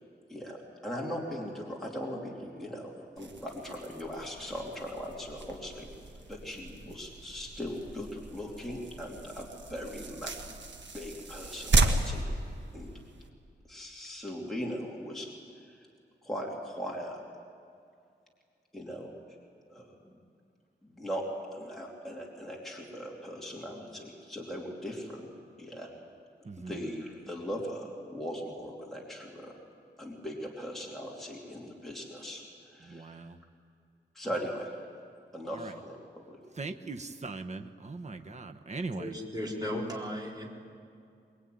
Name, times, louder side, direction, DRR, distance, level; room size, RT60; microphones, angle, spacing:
voice 1, 0.8-5.9 6.3-10.6 10.9-12.2 12.7-12.9 13.7-15.3 15.6-15.8 16.2-17.2 18.7-19.1 19.7-20.1 20.8-25.3 25.6-25.9 26.6-29.5 30.0-33.3 34.1-34.7 35.3-36.4, equal, ahead, -3 dB, 3.1 m, -39 dB
sound 1, 3.2-13.3, right 2 dB, 75° right, 1.6 m, -34 dB
voice 2, 26.4-26.8 32.8-33.4 35.5-35.7 36.6-39.1, right 3 dB, 40° right, 5 dB, 1.0 m, -40 dB
voice 3, 39.0-40.5, equal, 20° right, -3 dB, 4.6 m, -36 dB
24.0 x 21.5 x 9.4 m, 2.3 s
wide cardioid pair, 130°, 19 cm